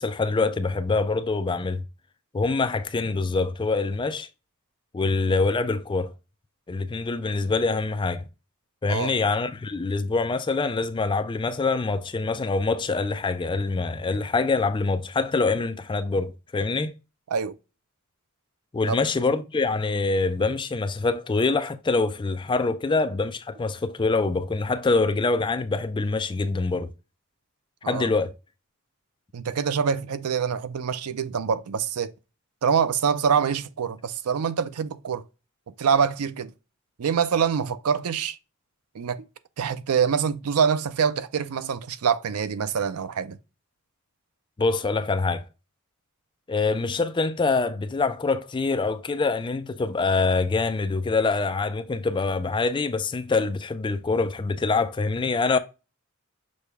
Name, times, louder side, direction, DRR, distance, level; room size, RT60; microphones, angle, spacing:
voice 1, 0.0-1.8 2.3-4.3 4.9-6.1 6.7-8.2 8.8-16.9 18.7-26.9 27.9-28.3 44.6-45.4 46.5-55.6, left 3 dB, 20° left, 0.3 m, -25 dB
voice 2, 29.3-32.1 32.6-35.2 35.8-36.5 37.0-38.4 38.9-39.2 39.6-43.4, right 7 dB, 85° right, 0.5 m, -25 dB
6.3 x 2.3 x 3.4 m
head